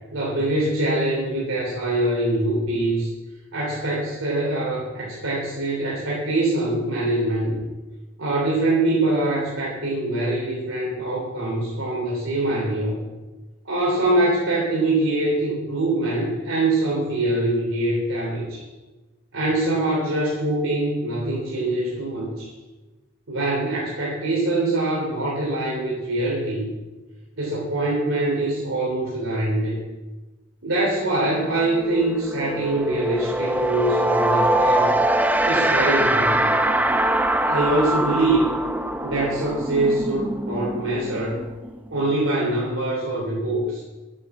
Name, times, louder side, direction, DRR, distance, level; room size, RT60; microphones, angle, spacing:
voice 1, 0.1-3.1 3.5-7.6 8.2-12.9 13.6-18.6 19.3-22.5 23.3-26.7 27.4-29.8 30.6-35.0 35.4-36.5 37.4-38.5 39.0-41.4 41.9-43.8, right 2 dB, 75° right, -5 dB, 3.5 m, -24 dB
sound 1, 31.1-31.3 31.6-42.1, right 1 dB, 10° right, 0.5 m, -23 dB
11.5 x 8.6 x 7.3 m, 1.2 s
head